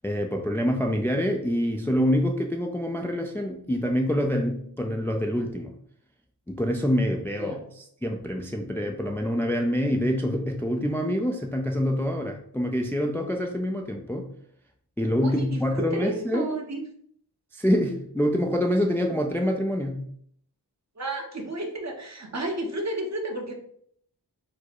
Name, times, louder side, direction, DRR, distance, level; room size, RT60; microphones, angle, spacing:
voice 1, 0.0-5.7 6.5-14.3 15.0-16.5 17.5-20.0, equal, 5° left, 2 dB, 0.4 m, -26 dB
voice 2, 15.2-16.8 21.0-23.5, right 1 dB, 40° right, 2 dB, 0.9 m, -32 dB
4.5 x 2.1 x 4.5 m, 0.65 s
wide cardioid pair, 90°, 41 cm